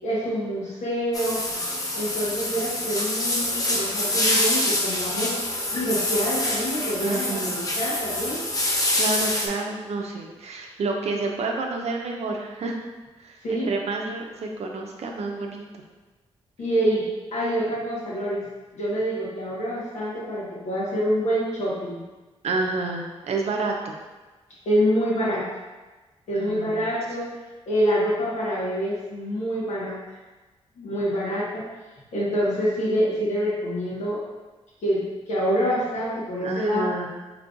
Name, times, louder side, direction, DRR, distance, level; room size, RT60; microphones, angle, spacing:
voice 1, 0.0-1.4 1.9-5.4 5.7-8.5 13.4-13.7 16.6-17.1 17.3-18.5 18.7-22.0 24.6-25.4 26.3-27.3 27.7-30.0 30.8-31.6 32.1-34.2 34.8-36.9, equal, 90° left, -8 dB, 1.3 m, -26 dB
sound 1, 1.1-9.5, left 1 dB, 30° left, 0.6 m, -26 dB
voice 2, 7.0-7.7 8.9-12.8 13.2-15.7 22.4-23.9 26.3-26.9 36.4-37.1, right 3 dB, 70° right, 1 dB, 0.6 m, -29 dB
3.7 x 3.2 x 2.5 m, 1.2 s
cardioid pair, 70°, 11 cm